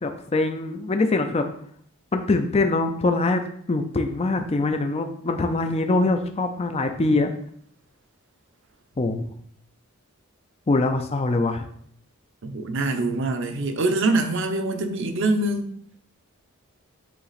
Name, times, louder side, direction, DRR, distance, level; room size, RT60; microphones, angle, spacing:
voice 1, 0.0-1.5 2.1-3.4 3.7-7.3 9.0-9.2 10.7-11.7, left 2 dB, 25° left, 6 dB, 0.4 m, -23 dB
voice 2, 12.4-15.7, right 2 dB, 55° right, 6 dB, 0.7 m, -24 dB
8.4 x 2.9 x 4.1 m, 0.63 s
head